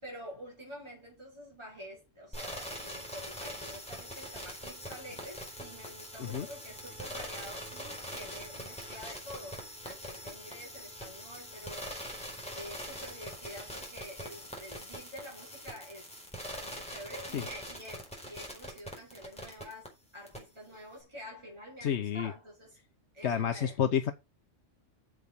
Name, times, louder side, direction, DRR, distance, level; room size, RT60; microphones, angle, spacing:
voice 1, 0.0-12.3 12.5-16.1 16.6-22.8 23.1-23.8, equal, 20° right, 5.1 m, -48 dB
sound 1, 2.3-19.9 20.3-20.4, equal, 5° left, 4.7 m, -43 dB
voice 2, 21.8-22.3 23.2-24.1, left 8 dB, 65° left, 1.1 m, -30 dB
8.5 x 7.3 x 5.3 m
omnidirectional pair, 1.3 m